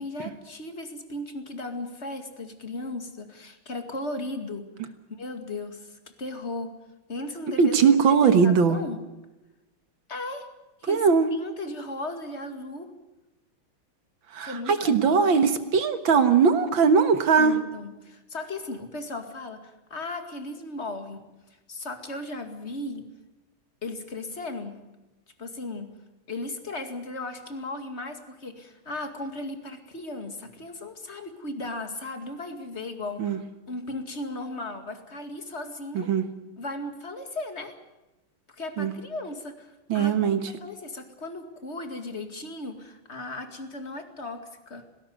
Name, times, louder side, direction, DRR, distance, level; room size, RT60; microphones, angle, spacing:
voice 1, 0.0-6.7 7.1-9.0 10.1-10.5 10.8-11.1 11.4-12.9 14.4-15.3 17.4-23.1 23.8-24.8 25.4-26.0 26.3-33.4 33.7-36.1 36.6-37.7 38.5-44.8, left 2 dB, 30° left, 7 dB, 2.4 m, -36 dB
voice 2, 7.6-8.8 10.9-11.3 14.3-17.6 33.2-33.4 35.9-36.3 38.8-38.9 39.9-40.5, right 6 dB, 65° right, 9 dB, 2.2 m, -20 dB
19.0 x 17.5 x 9.5 m, 1.0 s
omnidirectional pair, 2.3 m